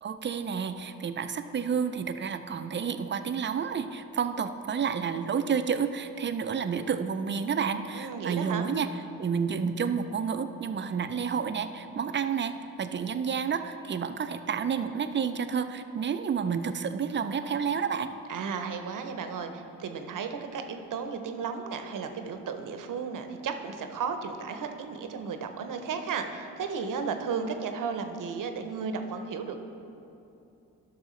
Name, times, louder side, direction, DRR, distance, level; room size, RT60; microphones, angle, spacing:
voice 1, 0.0-8.9 9.2-18.1, right 6 dB, 30° right, 10 dB, 0.5 m, -30 dB
voice 2, 7.9-8.7 18.3-29.6, right 5 dB, 55° right, 7 dB, 0.8 m, -34 dB
11.5 x 6.0 x 3.2 m, 2.8 s
supercardioid pair, 55°, 37 cm